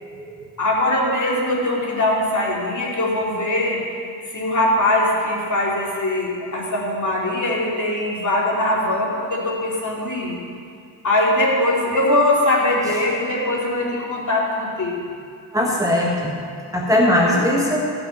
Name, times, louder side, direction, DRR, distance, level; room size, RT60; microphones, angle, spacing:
voice 1, 0.0-0.5 15.5-16.3 16.7-17.9, left 1 dB, 5° right, -4 dB, 1.6 m, -20 dB
voice 2, 0.6-3.8 4.2-10.4 11.0-15.1 17.2-17.5, left 1 dB, 35° left, -3 dB, 2.8 m, -21 dB
15.0 x 6.1 x 5.7 m, 2.5 s
cardioid pair, 75°, 48 cm